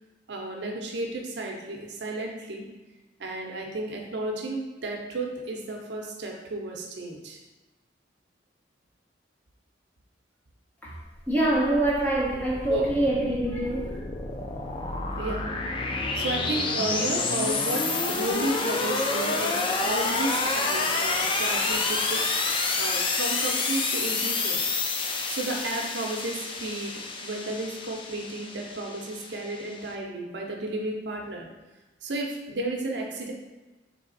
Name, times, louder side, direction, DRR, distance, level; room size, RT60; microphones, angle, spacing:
voice 1, 0.3-2.7 3.2-7.4 12.7-12.9 15.1-15.5 15.8-24.7 25.3-31.5 32.0-33.3, right 2 dB, 65° right, 1 dB, 0.6 m, -33 dB
sound 1, 11.3-29.9, left 3 dB, 30° left, 0.4 m, -29 dB
voice 2, 11.3-14.0 14.5-14.6 19.7-19.8 20.7-20.9, right 1 dB, 10° left, -5 dB, 0.7 m, -25 dB
3.3 x 3.3 x 3.9 m, 1.1 s
head